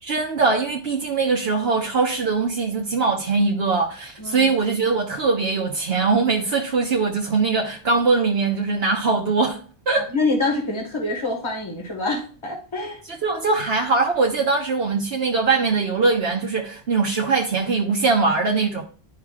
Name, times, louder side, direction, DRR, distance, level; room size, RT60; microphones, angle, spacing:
voice 1, 0.0-9.6 9.9-10.1 13.2-18.8, right 4 dB, 65° right, 0 dB, 1.2 m, -21 dB
voice 2, 4.2-4.5 10.1-13.0, left 2 dB, 25° left, 1 dB, 1.6 m, -26 dB
11.0 x 5.7 x 2.4 m, 0.41 s
omnidirectional pair, 1.1 m